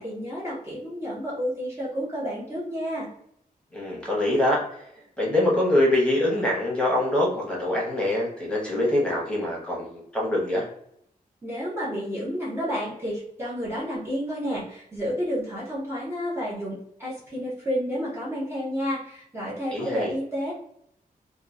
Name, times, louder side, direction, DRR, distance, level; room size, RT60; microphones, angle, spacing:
voice 1, 0.0-3.1 11.4-20.5, equal, 15° right, -8 dB, 0.8 m, -30 dB
voice 2, 3.7-4.6 5.2-10.6 19.7-20.1, left 1 dB, 5° left, -4 dB, 1.1 m, -24 dB
2.9 x 2.2 x 2.4 m, 0.73 s
wide cardioid pair, 130°, 15 cm